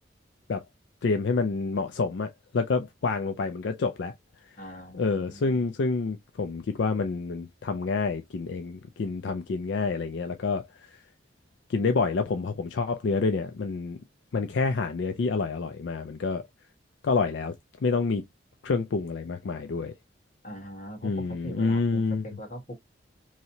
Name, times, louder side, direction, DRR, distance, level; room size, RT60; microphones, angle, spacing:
voice 1, 1.0-4.1 5.0-10.6 10.9-11.0 11.7-14.0 14.3-16.4 17.0-17.5 17.8-18.2 18.6-19.9 21.0-22.2, left 4 dB, 70° left, 0.4 m, -28 dB
voice 2, 4.6-5.8 20.4-22.7, equal, 40° left, 1.4 m, -41 dB
3.1 x 2.8 x 2.7 m
head